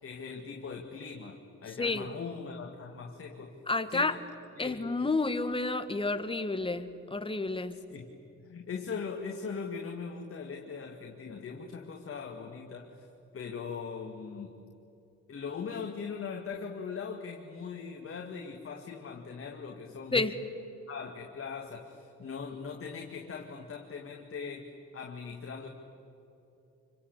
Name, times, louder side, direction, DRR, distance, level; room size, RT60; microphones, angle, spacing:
voice 1, 0.0-3.6 3.9-4.1 4.6-4.9 7.9-8.1 8.4-13.1 13.3-14.5 15.3-20.2 20.9-25.7, left 5 dB, 45° left, 1 dB, 2.6 m, -40 dB
voice 2, 1.8-2.1 3.7-4.2 4.6-7.8 20.1-20.4, left 3 dB, 15° left, 9 dB, 1.9 m, -30 dB
28.5 x 25.0 x 8.4 m, 2.9 s
cardioid pair, 90°, 30 cm